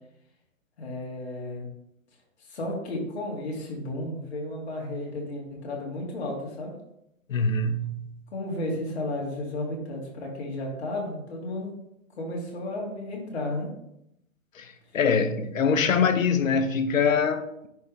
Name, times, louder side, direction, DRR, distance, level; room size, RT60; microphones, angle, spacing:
voice 1, 0.8-1.7 2.5-6.7 8.3-11.7 12.2-13.7, left 1 dB, 50° left, 2.3 m, -33 dB
voice 2, 7.3-8.1 14.6-17.7, left 5 dB, 70° left, 0.9 m, -24 dB
10.5 x 3.5 x 3.2 m
hypercardioid pair, 165°, 42 cm